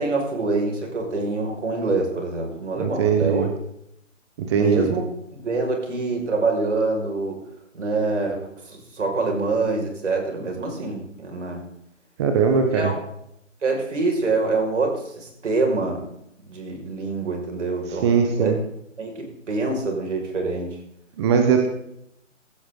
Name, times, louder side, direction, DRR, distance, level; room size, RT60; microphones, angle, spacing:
voice 1, 0.0-3.5 4.5-5.1 5.3-7.4 7.7-11.6 12.5-13.0 13.6-16.1 16.5-18.5 19.0-20.8, right 3 dB, 65° right, 2 dB, 5.8 m, -25 dB
voice 2, 2.8-3.5 4.5-4.9 12.2-12.9 18.0-18.6 21.2-21.7, right 6 dB, 20° right, 5 dB, 1.1 m, -20 dB
16.5 x 14.0 x 3.9 m, 0.75 s
figure-of-eight pair, 150°, 39 cm